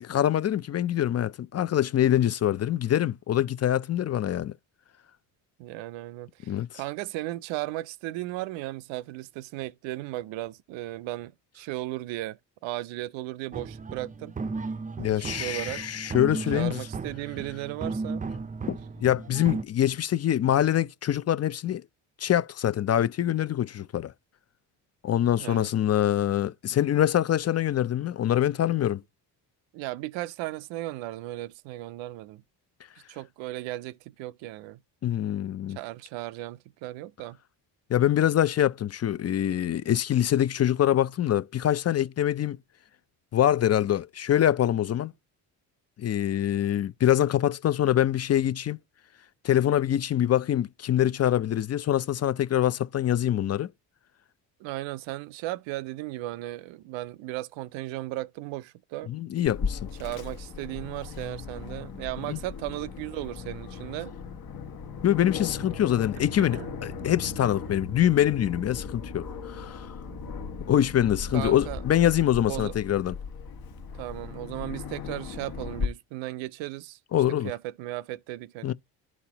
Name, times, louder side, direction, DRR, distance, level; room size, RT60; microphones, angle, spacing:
voice 1, 0.0-4.5 6.5-6.7 15.0-16.8 18.7-21.8 22.2-24.1 25.0-29.0 35.0-35.8 37.9-42.6 43.3-45.1 46.0-48.8 49.4-53.7 59.1-59.9 62.3-62.4 65.0-69.9 70.7-73.2 77.1-77.5 78.6-78.7, left 11 dB, 35° left, 0.4 m, -24 dB
voice 2, 5.6-14.3 15.2-15.8 16.5-18.3 25.4-25.7 29.7-32.4 33.1-34.8 35.7-37.4 54.6-59.1 60.0-64.1 66.2-66.3 66.5-66.7 70.1-70.3 71.3-71.8 72.5-72.7 73.9-77.0 77.4-78.7, right 17 dB, 85° right, 0.5 m, -36 dB
sound 1, 13.5-19.6, right 4 dB, 20° right, 0.5 m, -35 dB
Aircraft, 59.4-75.9, left 5 dB, 50° left, 1.1 m, -37 dB
12.0 x 4.2 x 2.9 m
supercardioid pair, 75°, 45 cm